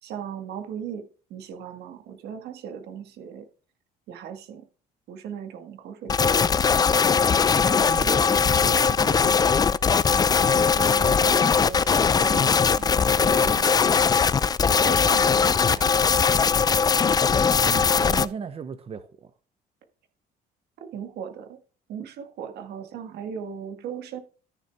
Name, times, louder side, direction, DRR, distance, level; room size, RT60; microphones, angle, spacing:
voice 1, 0.0-3.5 4.1-4.7 5.1-6.4 10.5-13.8 14.8-15.9 20.9-21.6 21.9-24.2, right 7 dB, 75° right, 1.7 m, -37 dB
sound 1, 6.1-18.3, left 6 dB, 25° left, 0.4 m, -20 dB
voice 2, 7.6-9.4 17.6-19.3, right 6 dB, 35° right, 0.8 m, -36 dB
sound 2, 12.7-13.0 13.7-14.3, right 2 dB, 5° right, 2.0 m, -46 dB
13.0 x 6.5 x 3.5 m
cardioid pair, 110°, 17 cm